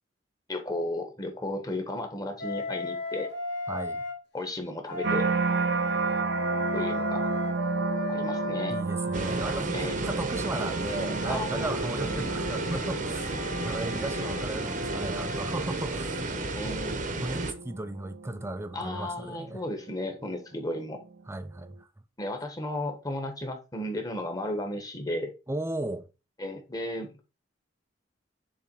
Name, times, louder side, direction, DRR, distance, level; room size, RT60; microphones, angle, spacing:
voice 1, 0.5-3.3 4.3-5.3 6.7-7.3 8.1-8.8 9.7-10.0 11.3-12.0 16.6-17.0 18.7-21.0 22.2-25.3 26.4-27.2, left 1 dB, 20° left, 1.3 m, -34 dB
Wind instrument woodwind instrument, 2.4-4.2 4.9-9.6 10.3-15.5, left 3 dB, 65° left, 2.7 m, -36 dB
voice 2, 3.7-4.1 8.7-13.4 13.6-16.4 17.2-19.6 21.3-21.8 25.5-26.1, right 2 dB, 15° right, 0.5 m, -35 dB
sound 1, 5.0-20.2 20.7-21.2, right 4 dB, 65° right, 0.5 m, -33 dB
sound 2, 9.1-17.5, right 2 dB, 45° right, 1.0 m, -33 dB
7.1 x 3.5 x 4.7 m
head